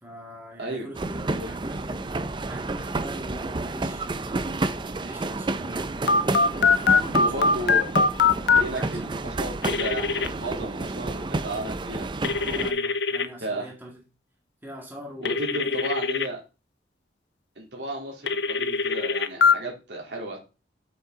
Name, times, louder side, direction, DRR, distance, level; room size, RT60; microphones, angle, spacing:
voice 1, 0.0-4.5 5.0-6.0 6.7-7.6 8.5-9.2 12.6-14.0 14.6-15.8, right 1 dB, 10° right, -1 dB, 1.8 m, -42 dB
sound 1, 0.9-12.7, right 2 dB, 25° right, 0.5 m, -30 dB
Telephone, 6.1-8.6 9.6-10.3 12.2-13.3 15.3-16.3 18.3-19.5, left 4 dB, 75° left, 0.6 m, -22 dB
voice 2, 7.1-7.8 8.6-12.1 13.4-13.7 15.2-16.4 17.5-20.4, right 1 dB, 75° right, -1 dB, 3.2 m, -33 dB
7.4 x 5.8 x 3.7 m, 0.30 s
head